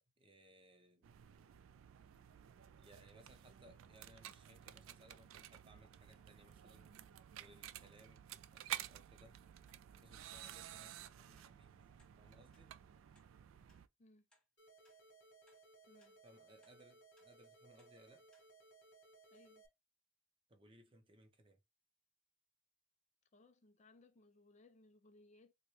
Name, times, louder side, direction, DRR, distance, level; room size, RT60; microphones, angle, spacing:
voice 1, 0.2-1.1 2.8-6.9 7.3-9.4 10.0-12.7 16.2-18.3 20.5-21.6, right 1 dB, 25° right, 0.6 m, -65 dB
sound 1, 1.0-13.9, right 11 dB, 75° right, 0.3 m, -52 dB
sound 2, 9.7-9.8 10.2-10.3 10.8-11.0 11.4-11.5 12.0-12.1 12.5-12.7 13.1-13.3 13.7-13.8 14.3-14.5 14.8-15.0 15.5-15.6 16.0-16.1 16.6-16.8 17.1-17.3 17.8-17.9 18.3-18.5 18.9-19.0, left 1 dB, 5° left, 1.0 m, -74 dB
sound 3, 14.6-19.7, right 3 dB, 55° left, 1.4 m, -64 dB
voice 2, 15.9-16.2 19.3-19.6 23.3-25.5, left 2 dB, 35° left, 0.4 m, -65 dB
4.3 x 2.2 x 3.1 m
head